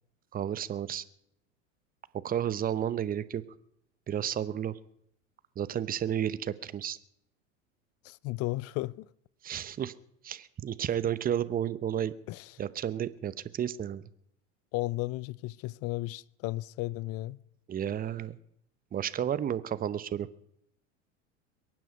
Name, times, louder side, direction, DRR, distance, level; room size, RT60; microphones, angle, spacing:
voice 1, 0.3-1.0 2.2-3.4 4.1-4.8 5.6-7.0 9.4-9.9 10.2-12.1 12.6-14.0 17.7-18.4 18.9-20.3, right 10 dB, 25° right, 0.8 m, -32 dB
voice 2, 8.0-9.1 12.3-12.6 14.7-17.4, left 19 dB, 40° left, 0.5 m, -34 dB
23.0 x 9.2 x 5.2 m
hypercardioid pair, 90°, 38 cm